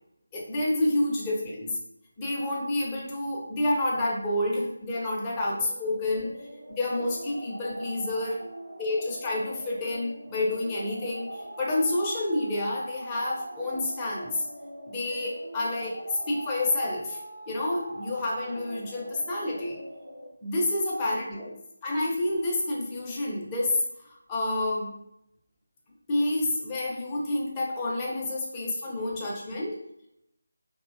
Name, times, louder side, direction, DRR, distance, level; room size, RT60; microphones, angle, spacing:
voice 1, 0.3-1.8 2.2-6.3 6.8-8.4 8.7-14.4 14.9-17.2 17.5-19.8 20.4-21.5 21.8-23.8 24.3-24.9 26.1-29.8, left 1 dB, 15° left, -4 dB, 0.4 m, -29 dB
sound 1, 5.0-20.3, right 1 dB, 70° right, 0.4 m, -43 dB
2.5 x 2.1 x 2.3 m, 0.78 s
figure-of-eight pair, 160°, 0 cm